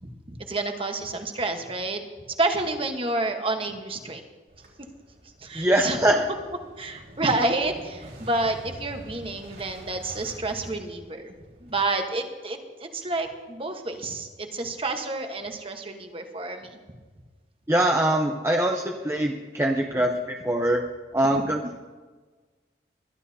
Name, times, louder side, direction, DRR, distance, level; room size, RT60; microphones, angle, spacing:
voice 1, 0.0-2.0 2.4-4.2 5.4-6.0 6.8-11.3 11.6-16.8 21.3-21.4, right 2 dB, 30° right, 5 dB, 1.2 m, -29 dB
Motorcycle / Engine starting, 4.5-11.7, equal, 65° right, 3.8 m, -45 dB
voice 2, 5.5-6.2 17.7-20.8 21.1-21.8, right 1 dB, 15° right, 2 dB, 0.6 m, -23 dB
21.5 x 12.0 x 2.8 m, 1.4 s
head